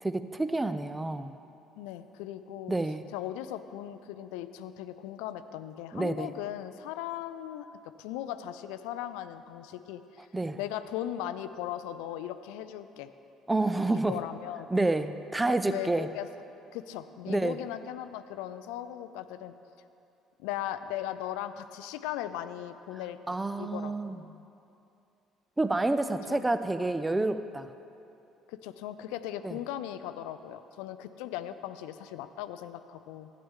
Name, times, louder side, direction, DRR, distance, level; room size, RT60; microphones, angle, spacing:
voice 1, 0.0-1.3 2.7-3.0 5.9-6.3 10.3-10.6 13.5-14.2 14.7-16.1 17.3-17.6 23.3-24.2 25.6-27.7 29.4-29.5, right 2 dB, 15° right, 11 dB, 0.5 m, -28 dB
voice 2, 1.7-2.8 3.1-7.7 8.0-10.2 10.6-13.1 13.9-14.7 15.5-16.3 16.7-19.5 20.4-24.4 26.3-26.5 28.5-33.3, left 12 dB, 70° left, 11 dB, 0.4 m, -38 dB
12.0 x 8.6 x 3.7 m, 2.7 s
hypercardioid pair, 55°, 0 cm